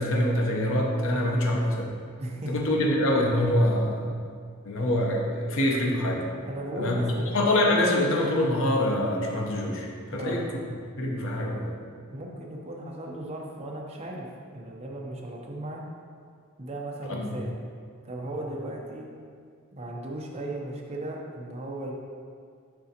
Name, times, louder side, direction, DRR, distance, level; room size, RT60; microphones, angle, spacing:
voice 1, 0.0-1.9 2.5-4.2 4.6-6.2 6.8-7.0 7.3-10.5 11.0-11.7 17.1-17.3, left 1 dB, 65° left, 0 dB, 0.8 m, -25 dB
voice 2, 2.2-2.5 6.4-7.3 10.1-10.4 12.1-14.3 14.5-15.8 16.6-17.5 18.0-19.1 19.7-21.9, right 1 dB, 30° right, -2 dB, 0.7 m, -36 dB
6.9 x 4.9 x 2.9 m, 2.1 s
head